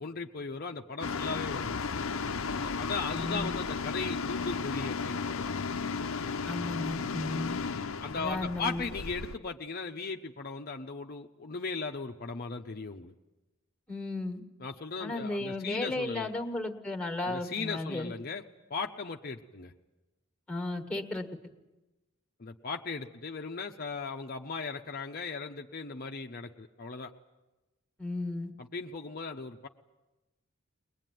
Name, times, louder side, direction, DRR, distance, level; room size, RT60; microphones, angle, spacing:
voice 1, 0.0-2.3 2.6-5.9 8.0-13.1 14.6-16.3 17.3-18.4 18.7-19.7 22.4-27.1 28.7-29.7, left 4 dB, 45° left, 3 dB, 0.8 m, -37 dB
sound 1, 1.0-9.4, left 5 dB, 75° left, 0.7 m, -34 dB
voice 2, 3.1-3.5 6.4-7.6 8.2-8.8 13.9-14.4 15.0-18.1 20.5-21.3 28.0-28.5, left 2 dB, 5° left, 5 dB, 1.7 m, -34 dB
21.5 x 21.0 x 9.2 m, 1.1 s
head